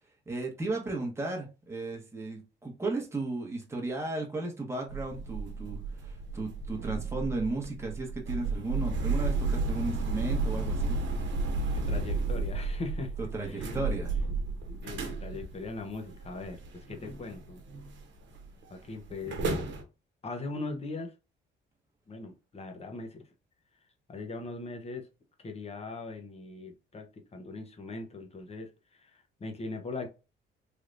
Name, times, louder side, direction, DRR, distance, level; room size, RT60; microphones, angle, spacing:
voice 1, 0.3-11.0 13.3-14.1, right 2 dB, 15° right, 1.1 m, -35 dB
sound 1, 4.9-18.0 18.3-18.6 19.1-19.8, right 3 dB, 65° right, 1.0 m, -33 dB
voice 2, 11.8-13.1 13.4-13.7 14.7-17.6 18.7-19.6 20.2-21.1 22.1-23.2 24.1-25.1 25.4-30.1, left 3 dB, 30° left, 0.9 m, -40 dB
3.4 x 2.8 x 2.5 m
cardioid pair, 90°, 20 cm